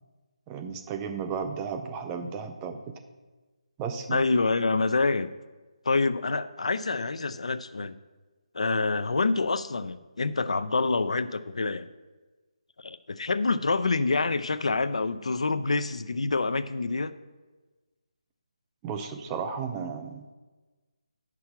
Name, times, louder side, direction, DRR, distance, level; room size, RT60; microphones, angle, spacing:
voice 1, 0.5-3.0 3.8-4.2 18.8-20.3, right 6 dB, 10° right, 7 dB, 0.3 m, -34 dB
voice 2, 4.1-5.3 5.9-8.0 8.5-11.9 12.8-17.2, left 3 dB, 75° left, 13 dB, 0.5 m, -27 dB
8.7 x 6.1 x 5.8 m, 1.3 s
hypercardioid pair, 170°, 3 cm